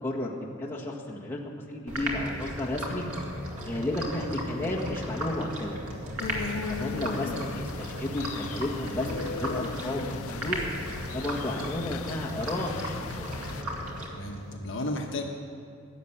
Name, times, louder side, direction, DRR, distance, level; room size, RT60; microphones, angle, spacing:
voice 1, 0.0-1.4 1.7-3.0 3.6-5.8 6.7-10.6 11.1-13.2, left 1 dB, 10° left, -5 dB, 1.7 m, -32 dB
sound 1, 1.9-14.6, equal, 75° right, 2.4 m, -36 dB
sound 2, 6.2-13.6, left 6 dB, 75° left, 0.4 m, -38 dB
voice 2, 6.3-6.6 14.1-15.3, left 1 dB, 55° left, 1 dB, 1.3 m, -34 dB
16.0 x 7.5 x 10.0 m, 2.2 s
head